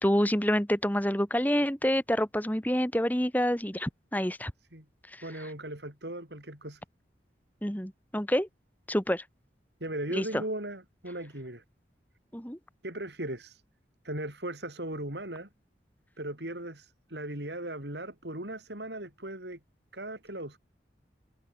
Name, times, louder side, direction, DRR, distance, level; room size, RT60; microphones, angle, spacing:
voice 1, 0.0-4.5 5.1-5.2 7.6-8.5 8.9-9.2 10.1-10.4 12.3-12.6, equal, 10° left, 3.1 m, -27 dB
voice 2, 5.2-6.8 9.8-11.6 12.8-13.6 14.0-15.5 16.2-19.6 19.9-20.6, right 1 dB, 80° right, 7.6 m, -38 dB
head